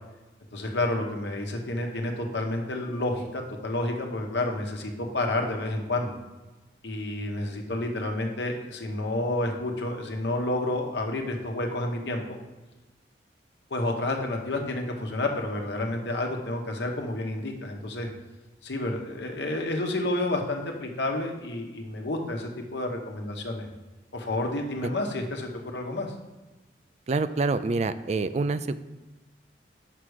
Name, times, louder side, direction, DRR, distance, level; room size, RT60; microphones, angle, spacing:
voice 1, 0.5-6.1 6.8-12.4 13.7-18.1 18.6-23.7 24.1-26.1, left 2 dB, 75° left, 2 dB, 1.1 m, -30 dB
voice 2, 27.1-28.8, right 3 dB, 40° right, 13 dB, 0.3 m, -26 dB
5.9 x 4.8 x 6.4 m, 1.1 s
head